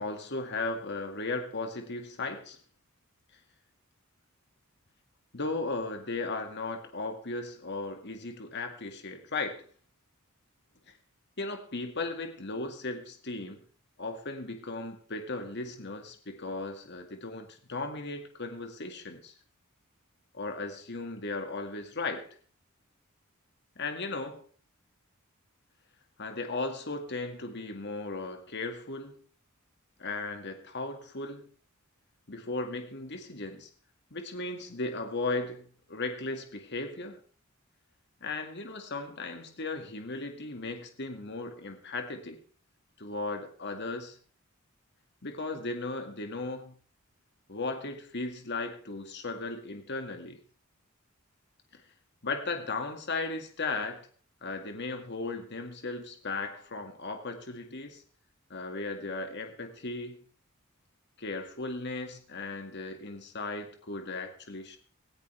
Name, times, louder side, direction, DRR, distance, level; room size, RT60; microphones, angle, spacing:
voice 1, 0.0-2.6 5.3-9.7 11.4-13.6 14.0-19.3 20.3-22.3 23.8-24.4 26.2-29.2 30.0-31.5 32.3-33.7 34.1-37.2 38.2-42.4 43.0-44.2 45.2-46.8 47.5-50.4 52.2-54.1 54.4-58.0 58.5-60.2 61.2-64.8, left 3 dB, 55° left, 2.1 m, -36 dB
18.0 x 16.0 x 3.4 m
head